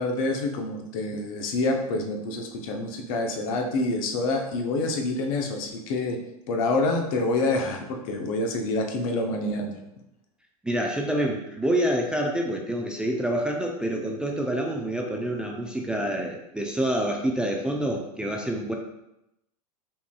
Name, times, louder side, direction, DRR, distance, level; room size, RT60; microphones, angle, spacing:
voice 1, 0.0-6.2 6.5-9.8, left 2 dB, 60° left, 3 dB, 0.7 m, -27 dB
voice 2, 10.6-18.7, right 1 dB, 5° right, 0 dB, 0.4 m, -27 dB
5.5 x 2.6 x 2.3 m, 0.87 s
hypercardioid pair, 105°, 20 cm